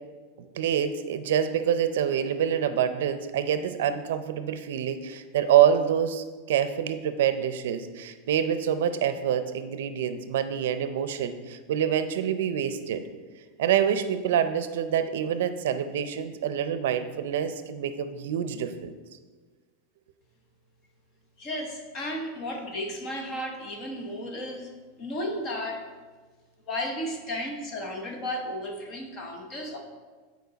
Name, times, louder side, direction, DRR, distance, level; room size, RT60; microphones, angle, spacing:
voice 1, 0.5-13.0 13.6-18.9, right 9 dB, 75° right, 11 dB, 0.5 m, -26 dB
voice 2, 21.4-24.7 25.0-25.9 26.7-29.8, left 1 dB, 25° left, 2 dB, 1.0 m, -34 dB
9.3 x 4.6 x 4.0 m, 1.4 s
supercardioid pair, 175°, 0 cm